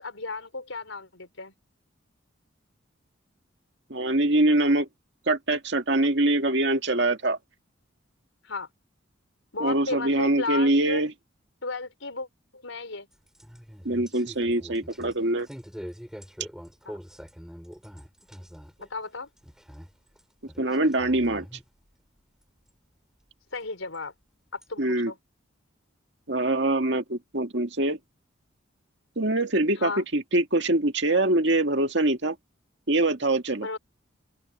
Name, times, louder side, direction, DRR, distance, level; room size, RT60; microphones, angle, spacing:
voice 1, 0.0-1.5 8.4-8.7 9.5-11.0 11.6-12.3 12.5-13.1 16.8-17.0 18.8-19.3 23.5-24.1 24.5-25.2 29.8-30.0 33.6-33.8, left 3 dB, 85° left, 4.7 m, -34 dB
voice 2, 3.9-4.9 5.3-7.4 9.6-11.1 13.8-15.5 20.6-21.5 24.8-25.1 26.3-28.0 29.2-32.4 32.9-33.7, right 2 dB, 60° right, 2.1 m, -24 dB
sound 1, 13.1-18.9 19.2-20.2 20.5-21.6 22.7-22.8 23.9-24.0 24.6-24.7, equal, 5° right, 4.0 m, -44 dB
open air
head